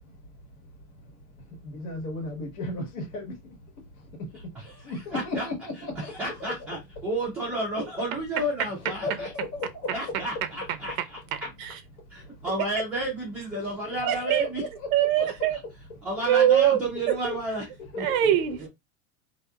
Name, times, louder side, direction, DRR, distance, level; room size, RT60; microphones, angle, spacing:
voice 1, 1.6-3.3 4.8-6.1 6.4-6.7 9.0-9.9 14.0-14.7 15.0-15.3 17.3-17.4 17.9-18.4, left 2 dB, 85° left, 1.5 m, -34 dB
voice 2, 5.1-5.5 6.0-9.3 9.9-11.5 12.1-14.6 16.0-17.6 18.0-18.7, right 1 dB, 5° right, 0.3 m, -32 dB
voice 3, 11.3-11.8 14.0-14.5 14.9-15.6 16.3-17.3 18.0-18.6, right 11 dB, 75° right, 0.6 m, -23 dB
2.8 x 2.5 x 2.2 m
supercardioid pair, 160°, 42 cm